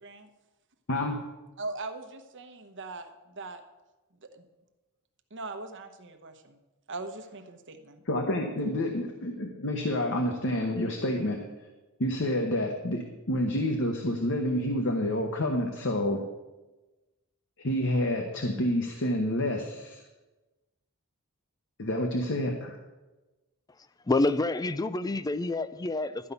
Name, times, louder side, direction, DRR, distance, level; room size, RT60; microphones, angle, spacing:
voice 1, 0.9-1.2 8.1-11.4 12.0-16.2 17.6-20.0 21.8-22.8, left 1 dB, 55° left, 1.1 m, -28 dB
voice 2, 1.6-3.6 4.2-4.5 5.3-6.6 6.9-8.0, right 3 dB, 55° right, 1.0 m, -40 dB
voice 3, 24.1-26.3, left 2 dB, 15° left, 0.4 m, -28 dB
12.0 x 5.5 x 8.2 m
head